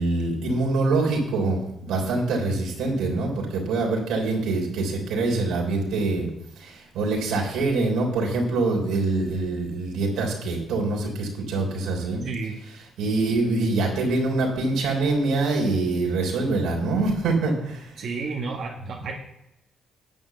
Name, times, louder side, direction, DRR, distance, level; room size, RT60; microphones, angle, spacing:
voice 1, 0.0-6.3 6.6-12.2 13.0-18.0, right 3 dB, 85° right, -1 dB, 3.6 m, -24 dB
voice 2, 12.2-12.6 18.0-19.1, right 4 dB, 65° right, -2 dB, 1.8 m, -31 dB
11.0 x 5.0 x 8.1 m, 0.84 s
cardioid pair, 90°, 0 cm